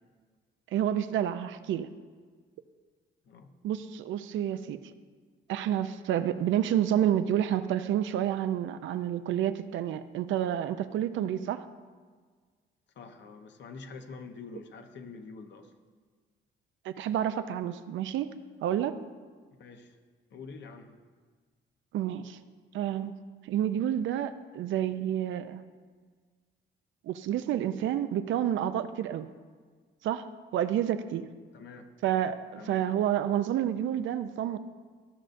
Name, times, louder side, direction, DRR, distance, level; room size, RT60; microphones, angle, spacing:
voice 1, 0.7-1.9 3.6-4.8 5.5-11.6 16.8-18.3 18.6-19.0 21.9-22.4 22.7-23.1 23.4-25.6 27.0-29.3 30.0-30.3 30.5-31.3 32.0-34.6, right 10 dB, 75° right, 11 dB, 0.5 m, -29 dB
voice 2, 13.0-15.7 19.6-20.0 20.3-21.0 31.5-31.9 32.6-32.8, left 4 dB, 65° left, 6 dB, 0.9 m, -46 dB
14.5 x 6.3 x 2.6 m, 1.6 s
cardioid pair, 90°, 20 cm